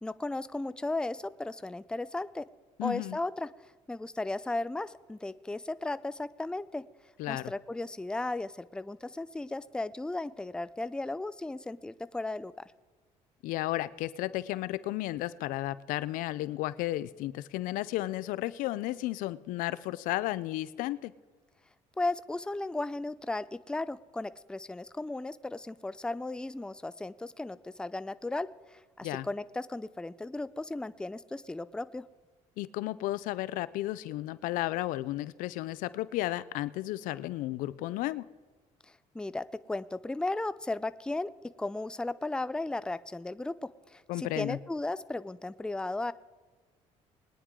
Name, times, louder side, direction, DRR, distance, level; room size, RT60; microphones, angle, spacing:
voice 1, 0.0-2.4 2.8-3.5 3.9-6.8 7.3-12.5 22.0-32.1 39.1-46.1, left 2 dB, 5° left, 15 dB, 0.4 m, -35 dB
voice 2, 2.8-3.2 7.2-7.5 13.4-21.1 29.0-29.3 32.6-38.3 44.1-44.6, left 16 dB, 80° left, 18 dB, 0.5 m, -33 dB
21.0 x 9.9 x 3.7 m, 1.3 s
cardioid pair, 95°, 14 cm